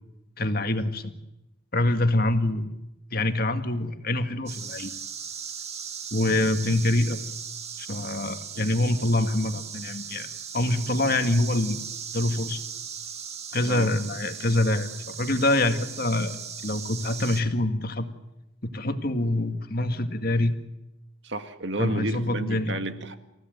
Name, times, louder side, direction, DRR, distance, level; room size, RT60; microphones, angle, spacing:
voice 1, 0.4-1.1 1.7-2.7 3.1-4.9 6.1-7.2 7.8-10.3 10.5-11.8 12.1-12.6 13.5-16.4 16.6-18.1 18.6-20.6 21.8-22.7, left 1 dB, 45° left, 7 dB, 2.1 m, -25 dB
sound 1, 4.5-17.4, right 7 dB, 30° right, 2.1 m, -38 dB
voice 2, 21.2-23.2, right 1 dB, 60° right, 8 dB, 2.1 m, -31 dB
29.0 x 16.0 x 9.2 m, 0.93 s
head